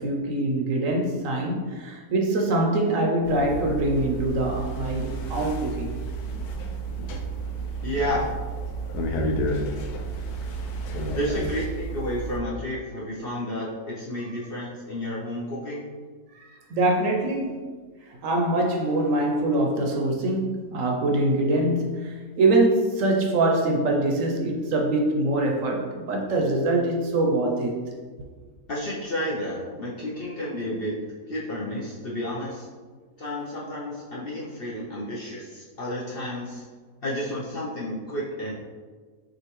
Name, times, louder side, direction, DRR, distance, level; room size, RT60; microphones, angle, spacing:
voice 1, 0.0-5.9 16.3-17.7 18.1-27.8, right 2 dB, 65° right, 1 dB, 0.9 m, -24 dB
sound 1, 3.2-12.4, right 2 dB, 85° left, 1.1 m, -31 dB
voice 2, 7.8-8.3 11.1-15.8 28.7-32.7 33.2-36.6 37.0-38.5, left 1 dB, 55° left, -6 dB, 0.7 m, -31 dB
6.3 x 2.5 x 3.0 m, 1.5 s
omnidirectional pair, 1.6 m